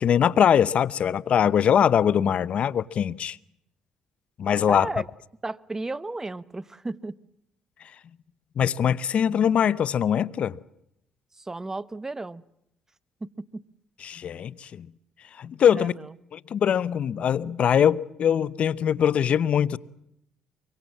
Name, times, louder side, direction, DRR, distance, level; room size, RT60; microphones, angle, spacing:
voice 1, 0.0-3.4 4.4-4.9 8.6-10.6 14.0-14.9 15.4-15.9 16.3-19.8, left 8 dB, 60° left, 0.8 m, -22 dB
voice 2, 4.7-5.1 5.4-7.2 11.4-12.4 13.2-13.6 15.7-16.0, right 2 dB, 20° right, 1.0 m, -34 dB
24.0 x 24.0 x 7.3 m
supercardioid pair, 65°, 2 cm